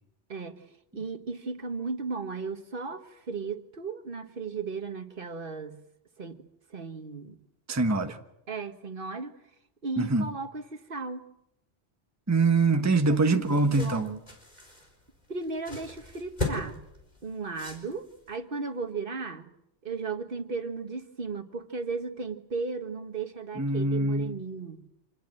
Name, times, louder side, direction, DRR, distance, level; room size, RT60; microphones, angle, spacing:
voice 1, 0.3-0.7 0.9-5.8 6.2-6.4 6.7-7.4 8.5-9.4 9.8-11.3 13.1-14.2 15.3-16.8 17.2-19.5 19.8-24.8, right 4 dB, 50° right, 8 dB, 1.7 m, -35 dB
voice 2, 7.7-8.2 10.0-10.3 12.3-14.1 23.5-24.3, right 3 dB, 15° right, 6 dB, 1.2 m, -24 dB
sound 1, 12.9-18.3, left 2 dB, 40° left, 4.9 m, -39 dB
26.5 x 19.5 x 7.8 m, 0.85 s
omnidirectional pair, 1.2 m